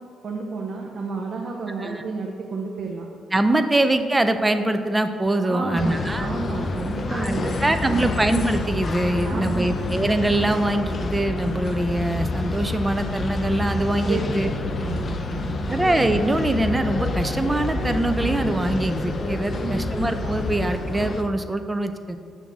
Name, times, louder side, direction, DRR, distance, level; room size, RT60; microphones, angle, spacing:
voice 1, 0.2-3.1 5.4-8.2 9.2-9.8 14.0-14.4 14.8-15.8 19.6-19.9, right 4 dB, 50° right, 0 dB, 0.7 m, -31 dB
voice 2, 3.3-6.3 7.1-7.3 7.6-14.5 15.7-22.2, right 1 dB, 15° right, 8 dB, 0.4 m, -23 dB
sound 1, 5.8-21.2, left 2 dB, 45° left, 0.5 m, -28 dB
6.9 x 3.6 x 6.1 m, 2.2 s
cardioid pair, 90°, 0 cm